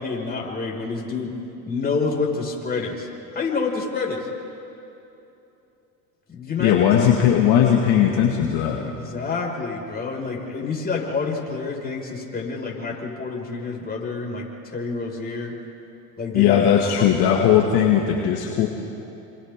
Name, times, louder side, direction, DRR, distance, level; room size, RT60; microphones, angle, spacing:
voice 1, 0.0-1.3 1.7-3.1 3.3-4.3 6.3-6.9 8.8-15.6 16.2-17.1, left 4 dB, 20° left, -2 dB, 5.7 m, -28 dB
voice 2, 6.6-8.8 16.3-18.7, left 9 dB, 55° left, -1 dB, 2.2 m, -18 dB
29.0 x 27.5 x 3.8 m, 2.8 s
hypercardioid pair, 95°, 47 cm